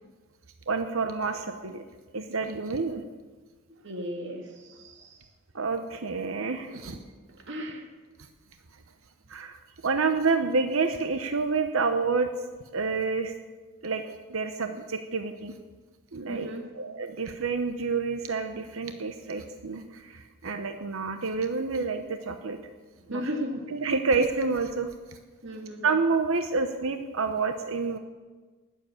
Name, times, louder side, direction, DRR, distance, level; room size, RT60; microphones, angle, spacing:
voice 1, 0.7-1.8 2.1-3.0 5.5-7.0 9.3-12.3 12.7-13.3 13.8-14.0 14.3-15.5 16.1-16.5 16.8-22.6 23.1-23.2 23.7-25.2 25.8-28.0, right 4 dB, 75° right, 7 dB, 0.9 m, -28 dB
voice 2, 3.8-5.3 6.7-7.0 7.4-7.9 16.3-16.6 23.0-23.7 25.4-25.8, equal, 60° right, 2 dB, 2.0 m, -36 dB
19.5 x 7.7 x 7.1 m, 1.3 s
head